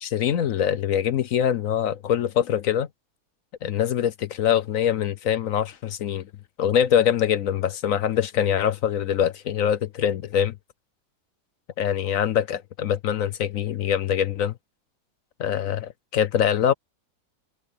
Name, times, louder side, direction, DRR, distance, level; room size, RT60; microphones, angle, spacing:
voice 1, 0.0-2.9 3.6-6.3 6.6-10.6 11.8-14.5 15.4-16.7, left 9 dB, 65° left, 1.0 m, -23 dB
omnidirectional pair, 1.7 m